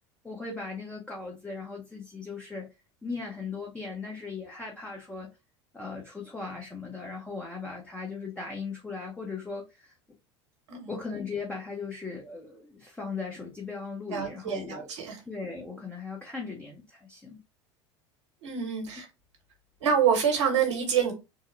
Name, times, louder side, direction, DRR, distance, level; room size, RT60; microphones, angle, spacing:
voice 1, 0.2-2.7 3.0-5.3 5.7-10.0 10.9-14.9 15.2-17.4, left 4 dB, 10° left, 0.8 m, -38 dB
voice 2, 14.1-15.2 18.4-19.1 19.8-21.1, right 7 dB, 75° right, 1.3 m, -26 dB
3.6 x 2.1 x 3.1 m
hypercardioid pair, 80°, 15 cm